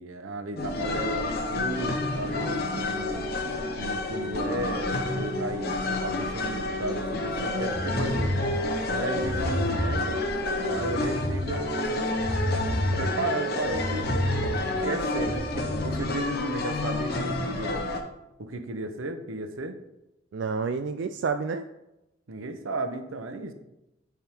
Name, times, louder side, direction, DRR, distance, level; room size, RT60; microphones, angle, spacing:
voice 1, 0.0-3.3 3.8-8.4 8.9-10.2 10.6-12.2 12.7-14.1 14.8-17.9 18.4-19.8 22.3-23.5, right 2 dB, 85° right, 8 dB, 0.7 m, -34 dB
sound 1, 0.6-18.0, left 2 dB, 50° left, 0.9 m, -29 dB
sound 2, 7.3-16.0, equal, 35° right, 1.3 m, -31 dB
voice 2, 20.3-21.7, right 5 dB, 60° right, 9 dB, 0.3 m, -29 dB
10.0 x 3.6 x 4.5 m, 0.92 s
head